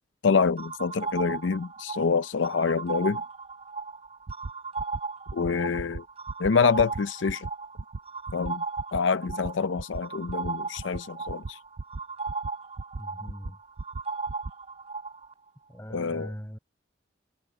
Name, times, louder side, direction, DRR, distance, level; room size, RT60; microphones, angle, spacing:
voice 1, 0.2-3.2 5.3-6.0 6.4-7.5 8.3-8.6 8.9-11.6 15.9-16.3, left 5 dB, 85° left, 0.5 m, -26 dB
sound 1, 0.6-15.3, right 4 dB, 35° right, 3.4 m, -37 dB
sound 2, 4.3-4.5 4.8-5.0 5.3-5.5 5.8-6.0 6.3-6.5 6.8-7.0 7.3-7.5 7.8-8.0 8.3-8.5 8.8-9.0 9.3-9.5 9.8-10.0 10.3-10.5 10.8-11.0 11.3-11.5 11.8-12.0 12.3-12.5 12.8-13.0 13.3-13.5 13.8-14.0 14.3-14.5, right 3 dB, 80° right, 0.7 m, -35 dB
voice 2, 13.0-13.6 15.7-16.6, equal, 15° left, 5.6 m, -40 dB
head